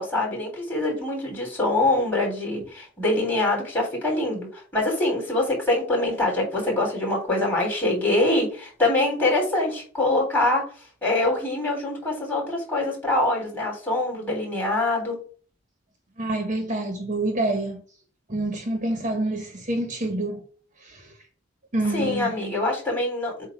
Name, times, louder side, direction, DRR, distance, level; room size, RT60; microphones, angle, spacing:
voice 1, 0.0-10.6 11.0-15.2 21.9-23.5, left 2 dB, 10° left, 3.2 m, -24 dB
voice 2, 16.2-17.8 18.3-20.4 20.8-21.1 21.7-22.3, right 1 dB, 40° right, 1.3 m, -27 dB
7.9 x 2.7 x 5.9 m
head